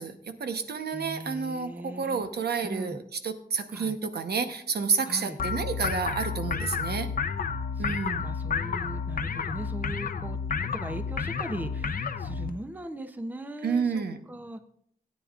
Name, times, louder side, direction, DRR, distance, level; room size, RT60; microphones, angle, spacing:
voice 1, 0.0-7.1 7.8-8.2 13.6-14.2, right 5 dB, 85° right, 7 dB, 0.9 m, -30 dB
voice 2, 0.9-2.2 2.6-3.0 3.7-4.0 5.0-5.4 7.8-14.0 14.3-14.6, right 1 dB, 10° right, 8 dB, 0.6 m, -39 dB
sound 1, 5.4-12.5, left 5 dB, 60° left, 0.6 m, -31 dB
16.5 x 9.3 x 2.4 m, 0.67 s
wide cardioid pair, 145°, 16 cm